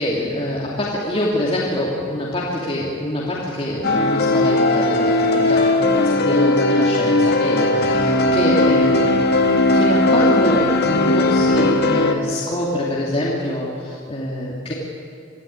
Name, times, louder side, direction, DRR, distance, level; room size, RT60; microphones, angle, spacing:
voice 1, 0.0-9.2 9.7-14.7, left 1 dB, 30° left, -6 dB, 2.8 m, -25 dB
sound 1, 3.8-12.1, left 2 dB, 55° left, 1.7 m, -17 dB
25.5 x 14.0 x 9.7 m, 2.3 s
head